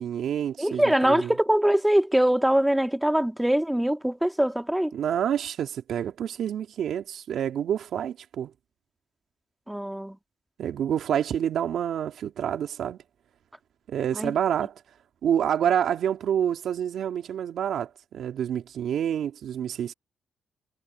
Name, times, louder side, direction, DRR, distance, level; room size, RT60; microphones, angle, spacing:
voice 1, 0.0-1.3 4.9-8.5 10.6-13.0 13.9-14.7 15.2-19.9, right 9 dB, 65° right, 2.8 m, -28 dB
voice 2, 0.6-4.9 9.7-10.2 14.1-14.3, right 1 dB, 5° right, 1.9 m, -23 dB
cardioid pair, 90°, 0 cm